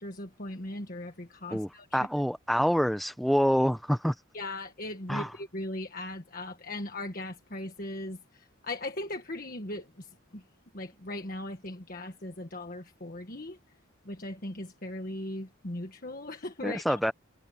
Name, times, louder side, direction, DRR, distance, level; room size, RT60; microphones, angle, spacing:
voice 1, 0.0-2.1 4.3-10.4 10.7-13.6 14.0-17.0, left 1 dB, 45° left, 1.6 m, -39 dB
voice 2, 1.5-4.1 5.1-5.3 16.6-17.1, equal, ahead, 0.6 m, -26 dB
head